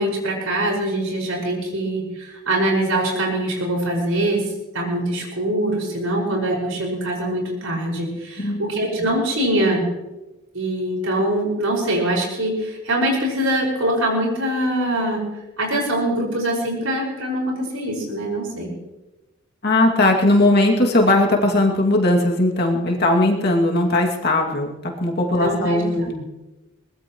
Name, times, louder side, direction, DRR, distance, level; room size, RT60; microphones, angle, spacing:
voice 1, 0.0-4.4 4.7-9.9 10.5-15.2 15.6-18.7 25.4-25.8, right 1 dB, 85° right, -1 dB, 5.7 m, -23 dB
voice 2, 19.6-26.2, left 1 dB, 50° left, 0 dB, 2.4 m, -18 dB
22.0 x 20.0 x 3.1 m, 1.0 s
head